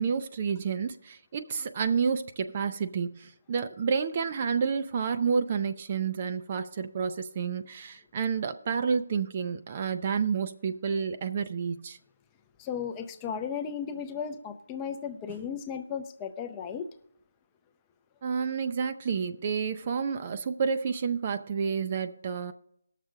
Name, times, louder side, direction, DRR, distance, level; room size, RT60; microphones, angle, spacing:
voice 1, 0.0-12.0 18.2-22.5, right 6 dB, 30° right, 0.5 m, -30 dB
voice 2, 12.6-16.9, left 7 dB, 15° left, 0.5 m, -35 dB
18.0 x 6.6 x 3.7 m
figure-of-eight pair, 165°, 0 cm